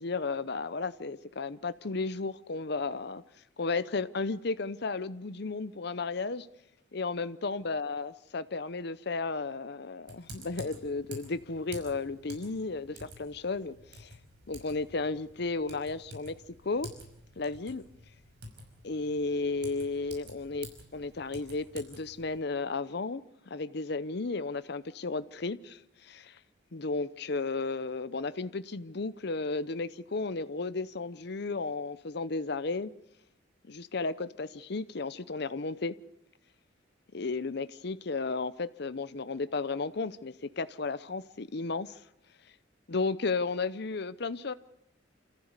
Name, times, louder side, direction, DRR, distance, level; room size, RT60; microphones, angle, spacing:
voice 1, 0.0-3.2 3.6-6.5 6.9-14.1 14.5-16.9 17.4-17.8 18.8-26.4 26.7-32.9 33.6-36.0 37.1-42.0 42.9-44.5, left 3 dB, 60° left, 0.7 m, -34 dB
Typing, 10.1-22.4, right 1 dB, 60° right, 5.4 m, -49 dB
28.0 x 14.5 x 8.2 m
head